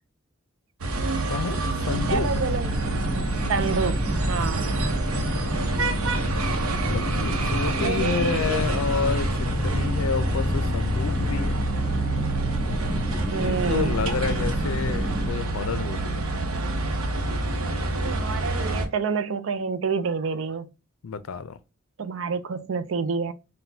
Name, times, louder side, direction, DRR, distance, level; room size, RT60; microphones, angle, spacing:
sound 1, 0.8-18.9, right 2 dB, 90° right, 0.8 m, -27 dB
voice 1, 1.3-2.3 6.8-11.7 13.3-16.3 21.0-21.6, left 5 dB, 80° left, 0.4 m, -30 dB
sound 2, 1.9-15.3, equal, 15° left, 0.6 m, -30 dB
voice 2, 2.1-2.7 3.5-4.7 7.5-8.6 13.3-14.0 17.9-20.7 22.0-23.3, right 5 dB, 65° right, 0.4 m, -28 dB
5.9 x 2.2 x 2.6 m
head